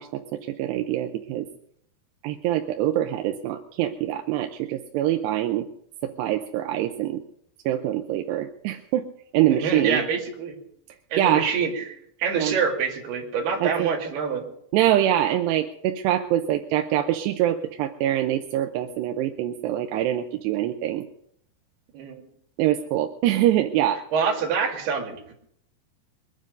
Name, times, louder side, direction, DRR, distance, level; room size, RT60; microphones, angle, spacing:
voice 1, 0.0-1.5 2.2-5.7 6.0-7.2 7.7-9.1 9.3-10.0 11.2-11.5 12.4-12.6 13.6-13.9 14.7-21.1 22.6-24.0, right 12 dB, 90° right, 5 dB, 2.9 m, -24 dB
voice 2, 9.5-10.6 11.1-14.4 21.9-22.2 24.1-25.3, right 6 dB, 70° right, 1 dB, 4.4 m, -26 dB
23.0 x 9.8 x 5.3 m, 0.70 s
omnidirectional pair, 4.7 m